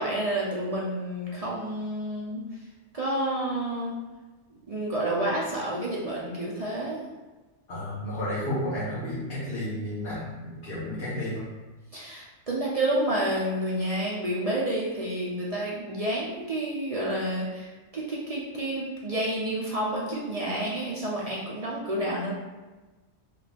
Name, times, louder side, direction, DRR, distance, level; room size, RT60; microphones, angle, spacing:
voice 1, 0.0-2.4 2.9-3.9 4.7-7.0 11.9-22.3, right 1 dB, 50° right, -5 dB, 0.4 m, -29 dB
voice 2, 7.7-11.4, left 1 dB, 45° left, -11 dB, 1.5 m, -32 dB
4.8 x 2.4 x 3.4 m, 1.2 s
omnidirectional pair, 1.5 m